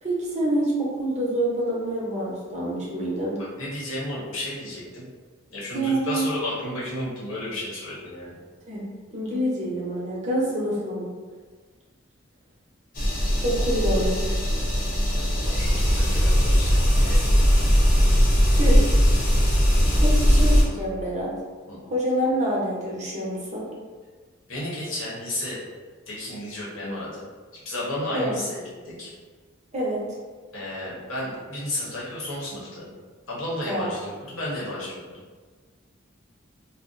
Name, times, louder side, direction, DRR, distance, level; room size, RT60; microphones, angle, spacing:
voice 1, 0.0-3.4 5.7-6.3 8.7-8.8 9.1-11.1 13.4-14.2 18.5-18.8 20.0-21.3 21.9-23.7 28.1-28.4 29.7-30.2 33.7-33.9, right 1 dB, 35° right, -6 dB, 0.8 m, -26 dB
voice 2, 3.6-5.0 5.5-8.4 14.2-17.9 19.9-20.0 21.7-21.8 24.5-25.6 26.1-27.2 27.5-29.1 30.5-32.9 33.3-35.0, left 1 dB, 85° left, -6 dB, 1.0 m, -33 dB
sound 1, 12.9-20.6, equal, 45° left, 0.7 m, -19 dB
2.6 x 2.0 x 3.8 m, 1.5 s
head